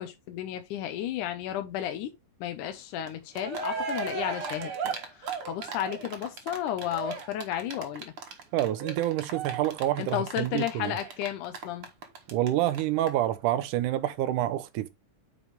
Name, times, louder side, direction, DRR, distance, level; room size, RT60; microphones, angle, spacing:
voice 1, 0.0-2.1 2.4-8.1 10.0-11.9, left 11 dB, 80° left, 2.3 m, -33 dB
Cheering, 3.1-3.2 3.3-12.5 12.7-12.8 13.1-13.2, right 5 dB, 50° right, 2.1 m, -36 dB
voice 2, 8.5-11.0 12.3-14.9, right 13 dB, 90° right, 2.3 m, -27 dB
8.8 x 5.5 x 3.5 m
omnidirectional pair, 3.6 m